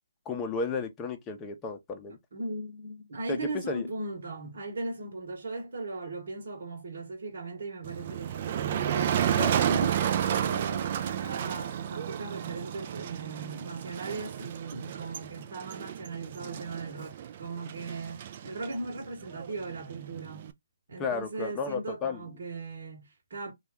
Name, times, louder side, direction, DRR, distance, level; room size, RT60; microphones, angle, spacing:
voice 1, 0.3-2.2 3.3-3.9 9.2-9.6 21.0-22.2, left 4 dB, 15° left, 0.7 m, -33 dB
voice 2, 2.3-20.5 20.9-23.5, right 3 dB, 60° right, 1.1 m, -38 dB
Motor vehicle (road), 7.8-20.5, right 10 dB, 40° right, 0.4 m, -32 dB
2.7 x 2.4 x 3.4 m
hypercardioid pair, 155°, 0 cm